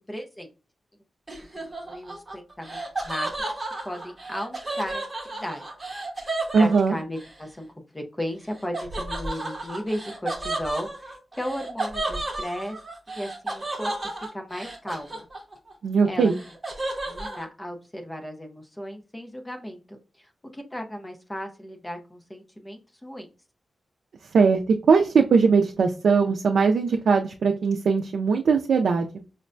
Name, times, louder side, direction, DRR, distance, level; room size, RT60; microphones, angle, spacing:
voice 1, 0.1-0.5 1.5-3.5 3.8-5.6 6.5-7.7 7.9-12.8 13.1-15.3 16.0-16.3 17.1-23.3, equal, 10° left, 3 dB, 0.5 m, -35 dB
Laughter, 1.3-7.3 8.7-15.7 16.0-17.4, right 2 dB, 15° right, 0.9 m, -33 dB
voice 2, 6.5-6.9 15.8-16.4 24.3-24.6 24.9-29.1, right 5 dB, 85° right, 2 dB, 0.3 m, -20 dB
5.1 x 2.1 x 2.5 m, 0.33 s
wide cardioid pair, 175°, 0 cm